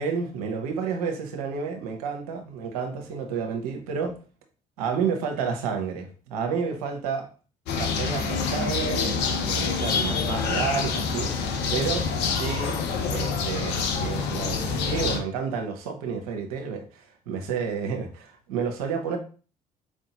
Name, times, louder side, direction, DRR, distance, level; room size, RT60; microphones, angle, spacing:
voice 1, 0.0-4.2 4.8-7.3 7.7-12.8 13.1-19.2, right 6 dB, 75° right, 3 dB, 0.7 m, -30 dB
sound 1, 7.7-15.2, left 5 dB, 65° left, 0.7 m, -27 dB
4.4 x 2.6 x 2.9 m, 0.37 s
hypercardioid pair, 50°, 19 cm